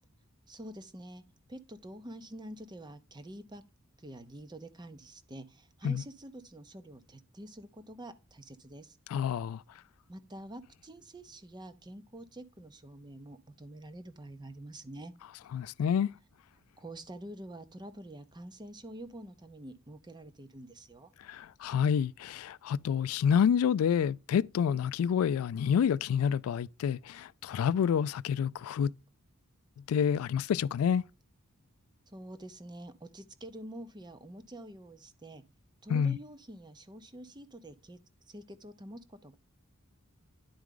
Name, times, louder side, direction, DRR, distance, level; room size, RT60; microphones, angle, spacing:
voice 1, 0.5-1.2 1.5-3.6 4.0-9.0 10.1-15.1 16.8-21.1 32.1-35.4 35.8-38.0 38.3-39.4, right 1 dB, 20° right, 0.7 m, -47 dB
voice 2, 9.1-9.6 15.5-16.1 21.3-28.9 29.9-31.0 35.9-36.2, left 7 dB, 85° left, 0.3 m, -28 dB
10.5 x 4.7 x 3.7 m
head